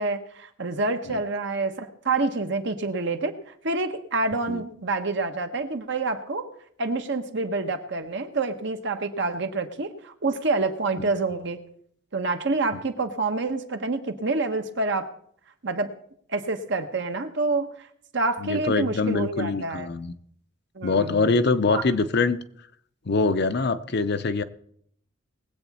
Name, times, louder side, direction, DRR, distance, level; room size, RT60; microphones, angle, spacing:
voice 1, 0.0-3.3 3.6-6.5 6.8-11.6 12.1-15.1 15.6-15.9 16.3-17.7 18.1-19.9 20.7-21.3 21.7-21.8, right 3 dB, 65° right, 7 dB, 1.1 m, -27 dB
voice 2, 18.4-20.1 20.8-22.4 23.1-24.4, left 3 dB, 55° left, 11 dB, 0.6 m, -24 dB
20.0 x 8.2 x 4.2 m, 0.65 s
head